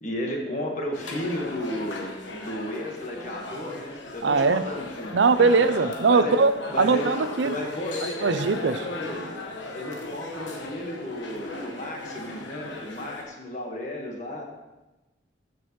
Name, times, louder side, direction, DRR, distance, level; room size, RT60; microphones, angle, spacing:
voice 1, 0.0-2.1 2.4-5.8 6.1-6.4 6.7-7.1 7.4-9.3 9.7-14.5, left 1 dB, 40° left, 0 dB, 1.5 m, -33 dB
sound 1, 0.9-13.2, left 2 dB, 80° left, 1.3 m, -38 dB
voice 2, 4.2-4.6 5.1-6.5 6.8-7.5 8.2-8.8, right 4 dB, 75° right, 12 dB, 0.5 m, -20 dB
14.5 x 6.1 x 3.1 m, 1.1 s
head